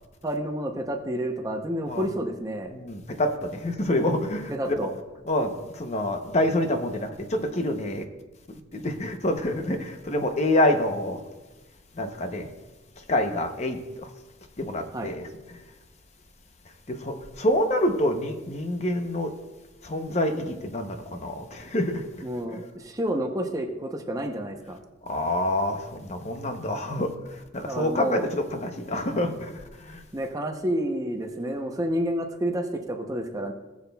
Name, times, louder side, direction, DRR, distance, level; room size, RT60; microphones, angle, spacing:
voice 1, 0.2-2.7 4.5-4.9 14.9-15.1 22.2-24.8 27.7-28.3 30.1-33.5, right 1 dB, 20° right, 3 dB, 0.7 m, -29 dB
voice 2, 2.7-4.7 5.3-8.1 8.7-11.2 12.0-12.5 13.1-14.1 14.6-15.3 16.9-19.3 19.8-22.1 25.1-27.1 27.5-29.5 29.9-30.0, left 1 dB, 35° left, 6 dB, 0.7 m, -27 dB
19.0 x 7.3 x 2.3 m, 1.1 s
head